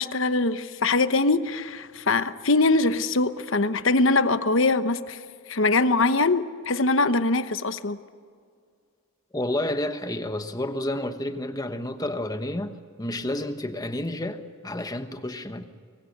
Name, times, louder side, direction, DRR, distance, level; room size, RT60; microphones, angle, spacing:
voice 1, 0.0-5.2 5.5-8.0, left 3 dB, 65° left, 1.0 m, -22 dB
voice 2, 9.3-15.6, left 1 dB, 20° left, 1.2 m, -30 dB
25.0 x 22.5 x 6.7 m
head